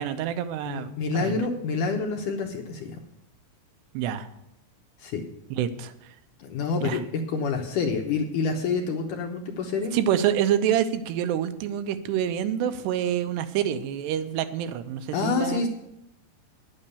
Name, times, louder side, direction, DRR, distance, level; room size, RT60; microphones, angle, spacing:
voice 1, 0.0-1.4 3.9-4.3 5.5-5.9 6.8-7.0 9.9-15.6, right 10 dB, 90° right, 10 dB, 3.0 m, -27 dB
voice 2, 0.7-3.0 5.0-5.2 6.4-10.0 15.1-15.7, left 4 dB, 70° left, 3 dB, 2.1 m, -27 dB
10.5 x 8.7 x 6.9 m, 0.82 s
omnidirectional pair, 4.7 m